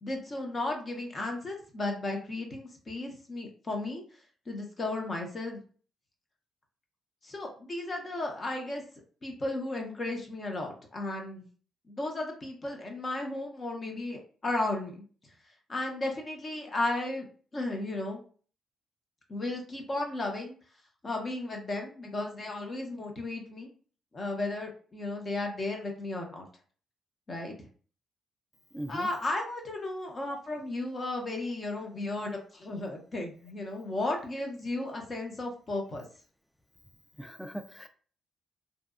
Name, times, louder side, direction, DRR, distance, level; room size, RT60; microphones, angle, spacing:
voice 1, 0.0-4.0 4.5-5.6 7.2-8.8 9.2-11.5 11.9-15.0 15.7-17.3 17.5-18.2 19.3-20.6 21.0-23.7 24.1-26.5 27.3-27.5 28.9-36.0, left 2 dB, 35° left, 1 dB, 0.7 m, -34 dB
voice 2, 28.7-29.1 30.3-30.4 37.2-37.9, right 1 dB, 5° left, 8 dB, 0.3 m, -39 dB
2.7 x 2.2 x 2.4 m, 0.42 s
cardioid pair, 90°, 0 cm